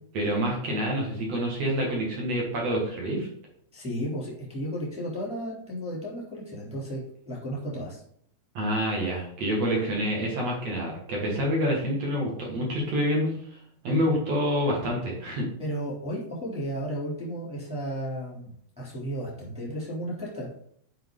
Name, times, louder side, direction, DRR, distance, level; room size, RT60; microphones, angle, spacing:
voice 1, 0.1-3.3 8.5-13.3 13.8-15.5, equal, 55° right, -2 dB, 2.0 m, -27 dB
voice 2, 3.7-7.0 7.2-8.0 15.6-20.5, equal, ahead, -5 dB, 1.7 m, -34 dB
9.0 x 5.1 x 3.8 m, 0.64 s
omnidirectional pair, 5.0 m